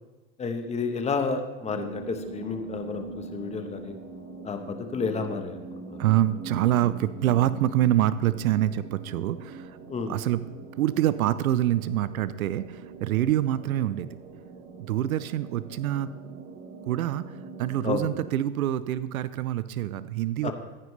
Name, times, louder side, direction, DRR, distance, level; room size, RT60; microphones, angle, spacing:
voice 1, 0.4-3.9 4.4-6.0 9.9-10.1 17.8-18.0 20.4-20.5, left 5 dB, 15° left, 6 dB, 1.1 m, -31 dB
sound 1, 1.6-18.3, right 4 dB, 35° right, 1.7 m, -42 dB
voice 2, 6.0-9.8 10.1-10.4 10.8-14.1 14.8-16.1 16.8-20.5, right 12 dB, 85° right, 15 dB, 0.6 m, -26 dB
14.5 x 9.3 x 3.3 m, 1.2 s
hypercardioid pair, 125°, 41 cm